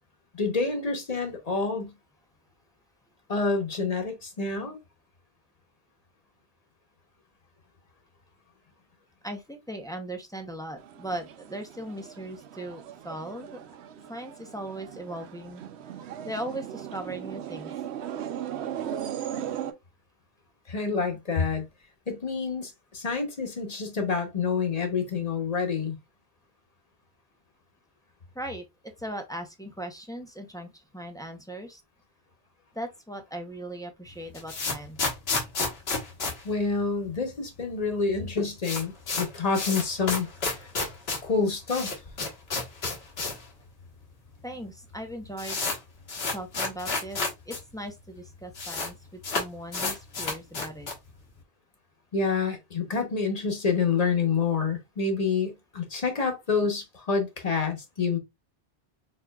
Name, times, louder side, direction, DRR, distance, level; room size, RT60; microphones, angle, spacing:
voice 1, 0.4-1.9 3.3-4.8 20.7-21.6 22.1-26.0 36.4-40.3 40.6-40.7 41.2-42.0 52.1-58.2, left 5 dB, 40° left, 1.0 m, -28 dB
voice 2, 9.2-13.6 14.1-15.6 16.2-17.7 28.3-31.8 32.7-35.0 44.4-45.6 46.3-50.9, right 1 dB, 5° left, 0.5 m, -38 dB
sound 1, 10.8-19.7, right 10 dB, 80° right, 0.8 m, -38 dB
sound 2, 34.1-37.3 37.6-37.7 37.9-38.0 38.3-43.5 43.8-43.9 44.6-44.7 44.9-47.6 47.9-48.0 48.2-48.9 49.2-51.1, left 3 dB, 70° left, 1.3 m, -31 dB
4.4 x 3.6 x 2.3 m
omnidirectional pair, 1.1 m